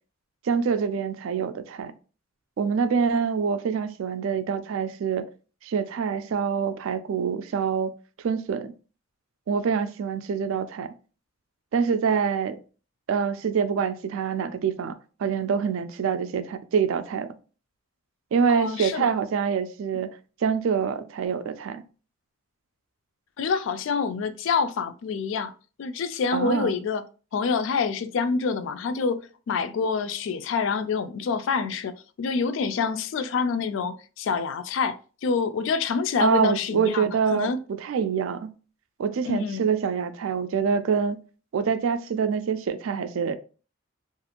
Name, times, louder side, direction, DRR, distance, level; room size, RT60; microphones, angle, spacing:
voice 1, 0.4-1.9 2.6-5.3 5.6-7.9 8.2-8.7 9.5-10.9 11.7-12.6 13.1-14.9 15.2-17.3 18.3-20.1 20.4-21.8 26.3-26.7 36.2-38.5 39.0-41.2 41.5-43.3, right 6 dB, 75° right, 0.3 m, -25 dB
voice 2, 18.5-19.1 23.4-25.5 25.8-27.0 27.3-37.6 39.2-39.7, left 5 dB, 65° left, 0.3 m, -27 dB
2.5 x 2.4 x 2.8 m
head